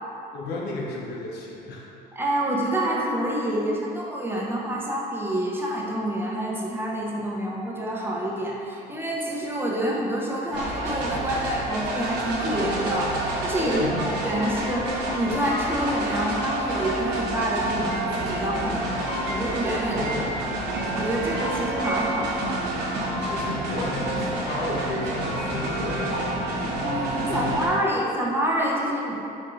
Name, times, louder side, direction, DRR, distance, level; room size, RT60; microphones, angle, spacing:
voice 1, 0.3-1.9 13.7-14.3 19.9-20.4 23.2-26.7 27.3-27.7, left 2 dB, 75° left, -3 dB, 0.7 m, -34 dB
voice 2, 2.1-20.0 20.4-20.7 20.9-22.5 26.8-29.2, right 1 dB, 15° right, -4 dB, 0.6 m, -27 dB
sound 1, 10.5-27.7, right 1 dB, 80° right, 0.8 m, -28 dB
4.9 x 3.6 x 2.5 m, 2.8 s
cardioid pair, 110°, 17 cm